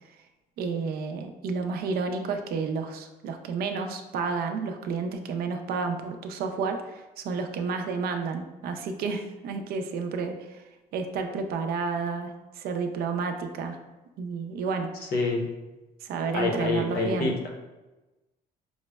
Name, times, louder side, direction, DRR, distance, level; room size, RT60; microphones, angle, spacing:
voice 1, 0.6-10.6 10.9-13.8 14.2-14.9 16.0-17.3, right 4 dB, 65° right, 5 dB, 0.4 m, -31 dB
voice 2, 15.1-15.5 16.3-17.5, left 3 dB, 65° left, 1 dB, 0.7 m, -26 dB
4.9 x 2.0 x 2.2 m, 1.1 s
cardioid pair, 110°, 17 cm